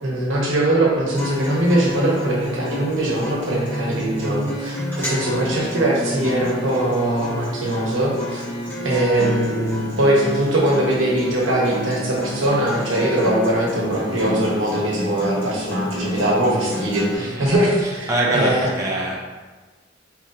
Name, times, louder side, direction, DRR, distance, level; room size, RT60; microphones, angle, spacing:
voice 1, 0.0-8.4 8.8-18.7, right 1 dB, 80° right, -3 dB, 0.9 m, -21 dB
Acoustic guitar, 1.1-17.1, left 1 dB, 10° left, 1.0 m, -29 dB
voice 2, 17.2-17.5 17.8-19.2, right 1 dB, 15° right, -5 dB, 0.5 m, -24 dB
4.1 x 3.0 x 2.5 m, 1.3 s
head